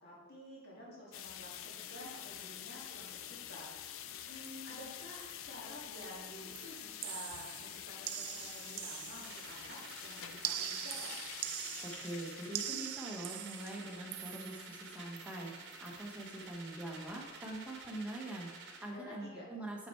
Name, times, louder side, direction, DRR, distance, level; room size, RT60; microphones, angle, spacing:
voice 1, 0.0-3.7 4.2-11.2 18.9-19.5, left 1 dB, 45° left, -5 dB, 1.9 m, -51 dB
sound 1, 1.1-18.0, left 10 dB, 65° left, 0.4 m, -48 dB
sound 2, 5.9-6.2 6.6-9.7 10.4-14.8 15.2-15.4 15.7-16.0, right 12 dB, 85° right, 0.4 m, -43 dB
sound 3, 9.2-18.9, right 4 dB, 50° right, 1.0 m, -51 dB
voice 2, 11.8-19.9, right 1 dB, 5° right, -2 dB, 0.9 m, -44 dB
5.8 x 5.6 x 4.5 m, 1.4 s
head